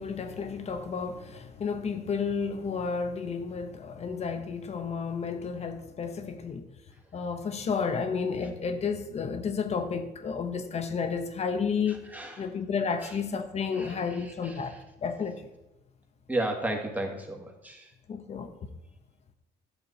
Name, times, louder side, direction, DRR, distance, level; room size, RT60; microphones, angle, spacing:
voice 1, 0.0-6.7 7.1-12.0 12.4-14.7 15.0-15.5 18.1-18.5, left 5 dB, 40° left, 1.1 m, -31 dB
voice 2, 13.7-14.6 16.3-17.9, right 1 dB, 10° right, 1.8 m, -33 dB
12.0 x 6.9 x 4.2 m
cardioid pair, 110°, 17 cm